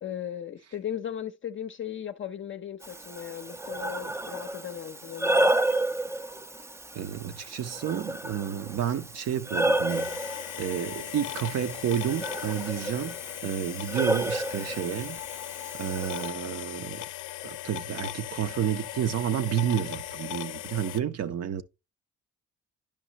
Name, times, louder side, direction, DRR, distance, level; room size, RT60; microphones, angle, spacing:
voice 1, 0.0-5.5, left 10 dB, 40° left, 0.6 m, -37 dB
Breathing, 2.8-16.3, right 1 dB, 10° right, 0.4 m, -31 dB
voice 2, 6.9-10.3 10.6-13.1 13.4-15.2 15.8-17.0 17.4-21.6, right 9 dB, 55° right, 0.6 m, -30 dB
sound 1, 9.9-21.0, left 14 dB, 85° left, 0.5 m, -38 dB
10.5 x 5.5 x 2.8 m
cardioid pair, 90°, 30 cm